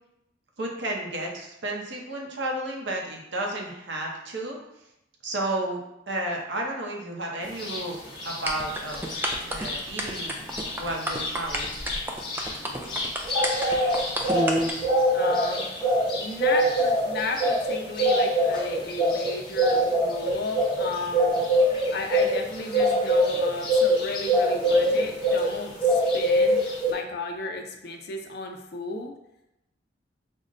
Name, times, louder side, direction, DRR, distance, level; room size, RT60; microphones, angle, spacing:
voice 1, 0.6-4.6 5.2-10.3 10.8-11.8, right 1 dB, 65° right, 0 dB, 0.7 m, -32 dB
sound 1, 7.6-7.8 8.2-9.8 10.1-10.2 10.5-25.5 25.8-26.9, equal, 25° left, 0.9 m, -24 dB
sound 2, 8.5-14.7, right 1 dB, 10° right, 0.3 m, -29 dB
voice 2, 15.1-15.6 16.2-21.5 21.9-29.1, left 3 dB, 60° left, 3 dB, 0.4 m, -34 dB
5.3 x 2.1 x 2.5 m, 0.86 s
head